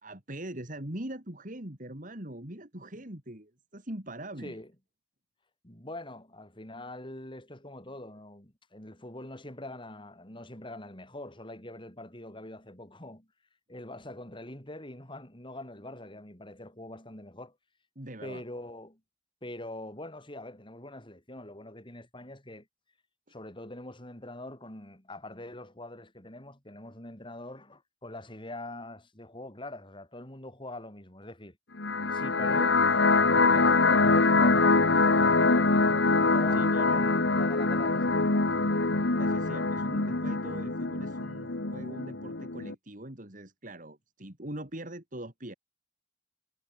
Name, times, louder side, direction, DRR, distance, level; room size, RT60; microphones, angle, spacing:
voice 1, 0.0-4.6 18.0-18.4 36.5-37.0 39.2-45.5, right 1 dB, 45° right, 3.7 m, -42 dB
voice 2, 5.6-13.3 13.7-17.6 18.2-19.0 19.4-22.7 23.3-31.6 32.1-32.9 33.3-38.4, left 1 dB, 30° left, 6.5 m, -43 dB
sound 1, 31.8-42.7, left 3 dB, 85° left, 1.7 m, -24 dB
head